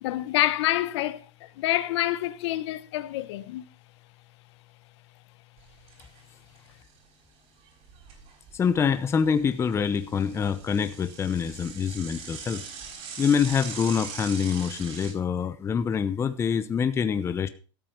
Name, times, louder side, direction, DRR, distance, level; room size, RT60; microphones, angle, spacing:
voice 1, 0.0-3.6, left 15 dB, 60° left, 1.0 m, -27 dB
Bicycle / Mechanisms, 5.6-6.2 6.6-6.7 6.9-7.0 7.7-8.8 9.2-15.1, right 6 dB, 40° right, 4.3 m, -41 dB
voice 2, 8.5-12.7 13.2-17.5, left 7 dB, 15° left, 0.8 m, -25 dB
13.0 x 7.5 x 5.1 m
supercardioid pair, 130°, 16 cm